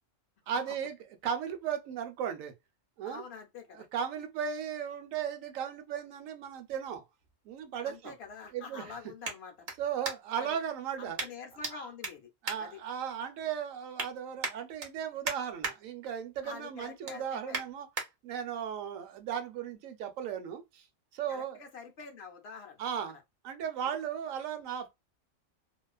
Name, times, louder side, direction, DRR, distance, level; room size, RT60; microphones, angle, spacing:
voice 1, 0.5-1.0 1.2-2.5 3.0-3.2 3.7-7.0 7.5-8.1 8.5-8.9 9.8-11.2 11.7-11.9 12.4-17.9 18.2-20.8 21.1-21.6 22.8-23.2 23.4-24.9, right 8 dB, 90° right, 1.0 m, -36 dB
voice 2, 3.0-3.9 7.8-9.5 10.3-10.6 11.0-12.3 12.6-12.8 16.4-17.6 21.3-22.8, left 5 dB, 60° left, 0.8 m, -46 dB
sound 1, 6.4-10.5 11.2-11.7 12.0-13.3 13.7-14.1 14.4-15.8 16.2-16.4 16.8-18.1 18.6-18.7, right 4 dB, 55° right, 0.9 m, -39 dB
2.4 x 2.2 x 2.3 m
omnidirectional pair, 1.3 m